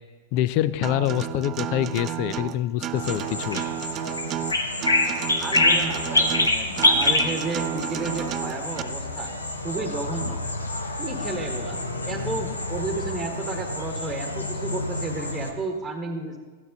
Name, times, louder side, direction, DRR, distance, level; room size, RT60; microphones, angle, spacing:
voice 1, 0.3-3.6, left 12 dB, 50° left, 16 dB, 0.5 m, -25 dB
Acoustic guitar, 0.8-8.8, right 11 dB, 35° right, 0.4 m, -32 dB
sound 1, 2.9-15.5, left 2 dB, 90° left, 1.1 m, -26 dB
voice 2, 5.4-9.3 9.6-10.4 11.0-16.4, right 3 dB, 15° right, 3 dB, 1.4 m, -32 dB
14.5 x 9.3 x 4.0 m, 1.4 s
figure-of-eight pair, 100°, 0 cm